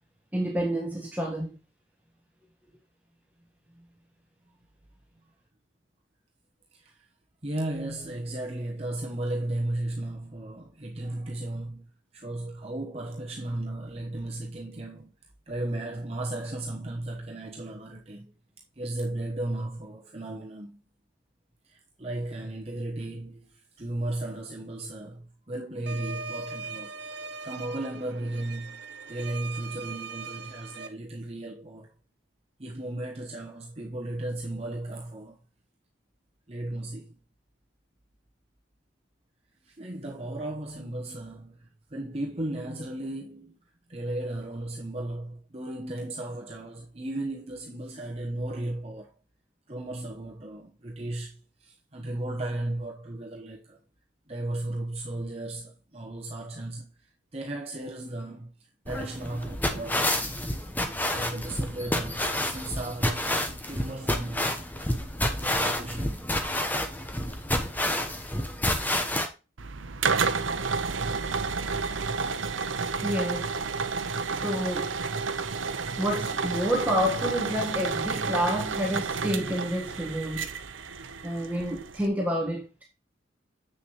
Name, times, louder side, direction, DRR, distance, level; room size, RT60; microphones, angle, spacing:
voice 1, 0.3-1.5 73.0-73.6 74.4-75.0 76.0-80.5 81.2-82.8, equal, 10° right, 1.4 m, -29 dB
voice 2, 6.7-7.1 7.4-11.9 12.1-15.1 15.5-18.3 18.8-20.8 21.6-26.9 27.4-28.8 29.1-31.9 32.6-35.4 36.5-37.2 39.6-43.6 43.9-49.1 49.7-53.8 54.3-60.4 61.1-64.6 65.4-66.3, right 1 dB, 30° right, 1.1 m, -35 dB
sound 1, 25.9-30.9, right 5 dB, 60° right, 1.0 m, -40 dB
sound 2, 58.9-69.3, left 1 dB, 10° left, 1.0 m, -29 dB
sound 3, 69.6-82.1, right 4 dB, 85° right, 0.8 m, -31 dB
8.0 x 6.8 x 3.1 m
head